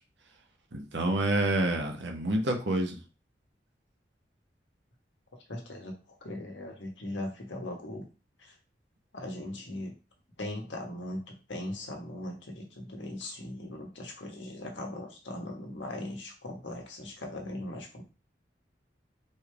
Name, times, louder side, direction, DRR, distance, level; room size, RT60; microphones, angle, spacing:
voice 1, 0.7-3.0, right 1 dB, 75° right, 3 dB, 1.1 m, -28 dB
voice 2, 5.5-5.9 6.2-8.1 8.4-8.5 9.1-9.9 10.4-18.0, left 1 dB, 85° left, 1 dB, 1.4 m, -39 dB
4.5 x 3.3 x 3.4 m, 0.32 s
head